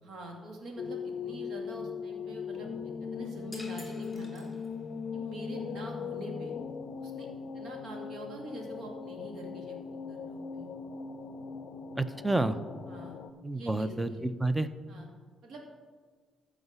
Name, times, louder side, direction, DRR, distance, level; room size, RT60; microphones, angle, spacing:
voice 1, 0.0-2.7 3.1-4.5 5.1-6.6 7.0-7.3 7.5-10.7 12.9-13.2 13.5-14.3 14.9-15.1 15.4-15.6, right 1 dB, 70° right, 1 dB, 2.3 m, -44 dB
sound 1, 0.8-13.3, left 6 dB, 65° left, 0.5 m, -39 dB
sound 2, 3.5-5.0, left 2 dB, 20° left, 2.5 m, -50 dB
voice 2, 12.0-12.6 13.4-14.7, right 2 dB, 15° right, 12 dB, 0.6 m, -29 dB
14.5 x 5.0 x 5.6 m, 1.5 s
cardioid pair, 90°, 0 cm